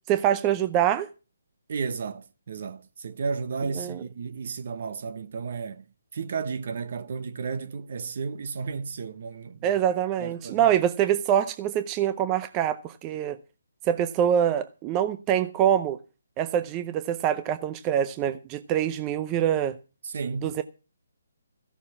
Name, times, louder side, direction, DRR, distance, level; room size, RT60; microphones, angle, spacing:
voice 1, 0.1-1.1 3.7-4.0 9.6-13.4 13.8-16.0 16.4-19.8 20.4-20.6, right 10 dB, 20° right, 0.6 m, -25 dB
voice 2, 1.7-5.8 6.1-9.8 10.2-10.7 20.0-20.6, right 5 dB, 55° right, 1.1 m, -33 dB
15.0 x 7.2 x 7.1 m
hypercardioid pair, 160°, 0 cm